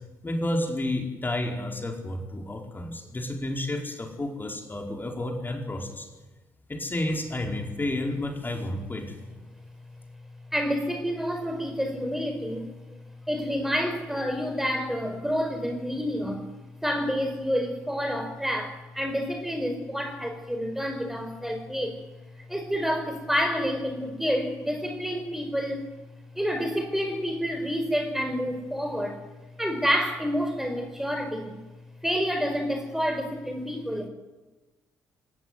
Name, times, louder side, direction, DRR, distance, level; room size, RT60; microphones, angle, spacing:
voice 1, 0.2-6.1 6.7-9.1, left 1 dB, 20° left, 3 dB, 4.9 m, -31 dB
voice 2, 10.5-12.7 13.3-16.4 16.8-22.0 22.5-25.9 26.3-29.2 29.6-31.6 32.0-34.1, equal, 5° right, 5 dB, 4.9 m, -28 dB
26.0 x 18.5 x 9.5 m, 1.1 s
figure-of-eight pair, 45°, 9 cm